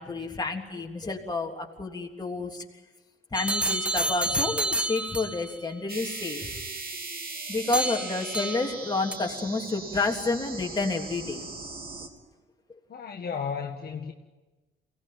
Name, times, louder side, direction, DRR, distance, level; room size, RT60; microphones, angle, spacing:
voice 1, 0.0-2.6 3.3-6.6 7.5-11.4, left 3 dB, 20° left, 3.2 m, -30 dB
sound 1, 3.3-5.5 7.7-8.8 9.1-9.2, right 1 dB, 5° right, 1.5 m, -29 dB
sound 2, 5.9-12.1, right 3 dB, 50° right, 3.3 m, -39 dB
voice 2, 12.9-14.1, left 6 dB, 50° left, 1.6 m, -34 dB
23.5 x 18.0 x 9.4 m
cardioid pair, 90°, 20 cm